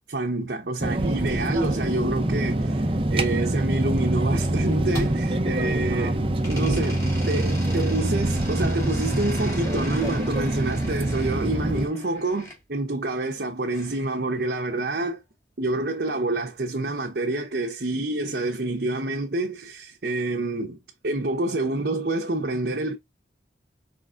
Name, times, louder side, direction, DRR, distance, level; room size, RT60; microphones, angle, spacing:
voice 1, 0.1-2.8 3.1-6.2 6.5-15.2 15.6-23.0, right 2 dB, 65° right, 0.8 m, -27 dB
sound 1, 0.8-11.9, right 1 dB, 30° right, 0.6 m, -25 dB
sound 2, 4.6-6.0 6.4-12.6 13.7-14.8, equal, 15° left, 2.1 m, -41 dB
5.1 x 3.8 x 2.3 m
head